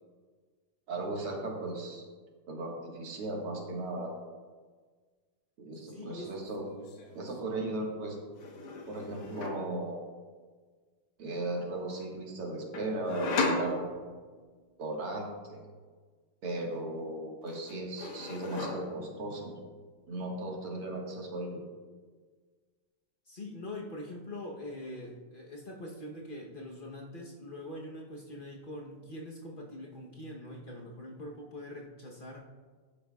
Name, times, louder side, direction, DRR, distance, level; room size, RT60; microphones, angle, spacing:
voice 1, 0.9-2.0 2.5-4.1 5.6-6.7 7.1-8.2 8.9-10.0 11.2-14.2 14.8-15.7 16.4-19.5 20.1-21.6, right 2 dB, 80° right, -1 dB, 2.5 m, -36 dB
voice 2, 5.9-6.3 23.3-32.4, left 1 dB, 50° left, -1 dB, 0.6 m, -43 dB
sound 1, 6.0-6.3 6.6-7.4 8.4-9.8 12.7-14.4 16.6-17.2 17.5-19.2, left 3 dB, 75° left, 2.1 m, -36 dB
14.0 x 11.0 x 2.4 m, 1.5 s
omnidirectional pair, 2.4 m